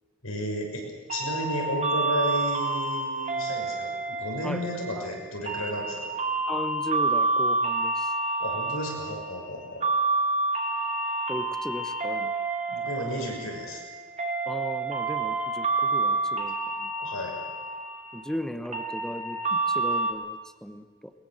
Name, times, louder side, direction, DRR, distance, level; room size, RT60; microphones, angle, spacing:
voice 1, 0.2-6.1 8.4-9.8 12.7-13.8 16.9-17.4, equal, 80° left, 0 dB, 6.4 m, -33 dB
sound 1, 1.1-20.1, right 3 dB, 35° right, 2.3 m, -29 dB
voice 2, 6.5-8.1 9.8-9.9 11.3-12.3 14.4-16.9 18.1-21.1, equal, 5° left, 10 dB, 1.1 m, -36 dB
21.5 x 21.5 x 7.8 m, 1.4 s
head